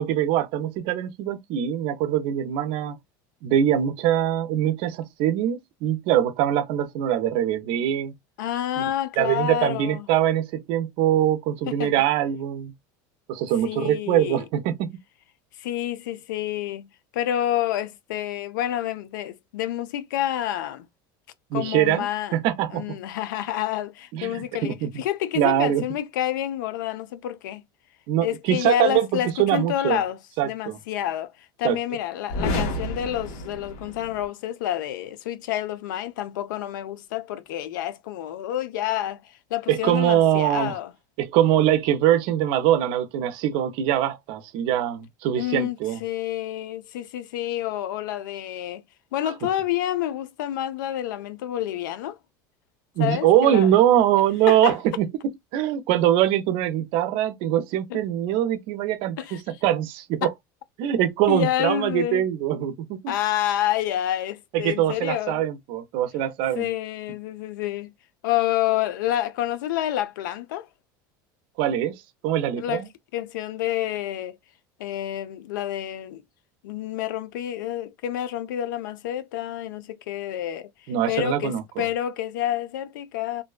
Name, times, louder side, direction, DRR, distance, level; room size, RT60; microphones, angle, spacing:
voice 1, 0.0-3.0 3.4-8.1 8.8-8.9 9.2-12.7 13.3-14.9 21.5-23.0 24.1-24.9 25.3-25.8 28.1-30.0 30.4-30.8 31.6-31.8 39.7-40.8 41.2-46.0 53.0-55.1 55.5-60.3 60.8-63.1 64.5-66.7 71.6-72.9 80.9-81.9, right 11 dB, 60° right, 0.6 m, -23 dB
voice 2, 8.4-10.1 11.7-11.9 13.6-14.4 15.6-16.9 17.1-20.9 21.5-22.4 22.7-27.6 28.2-30.2 30.4-31.3 31.6-39.2 39.5-40.9 45.3-48.8 49.1-52.2 53.0-53.7 54.5-54.8 57.9-58.0 59.2-59.4 60.2-60.3 61.3-62.3 63.1-65.4 66.6-67.9 68.2-70.7 72.6-72.8 73.1-74.4 74.8-76.2 76.6-80.7 81.1-83.4, left 12 dB, 90° left, 0.4 m, -28 dB
sound 1, 32.3-34.3, left 1 dB, 60° left, 1.0 m, -30 dB
2.5 x 2.1 x 2.3 m
supercardioid pair, 120°, 10 cm